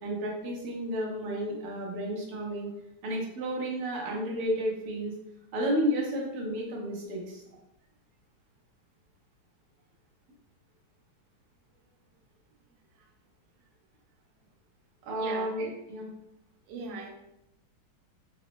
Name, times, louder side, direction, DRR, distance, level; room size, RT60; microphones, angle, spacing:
voice 1, 0.0-2.7 3.0-5.1 5.5-7.4 15.0-16.1, equal, 60° right, -2 dB, 1.1 m, -32 dB
voice 2, 15.1-15.7 16.7-17.1, right 4 dB, 85° right, 1 dB, 1.5 m, -40 dB
3.9 x 2.1 x 3.0 m, 0.84 s
omnidirectional pair, 2.3 m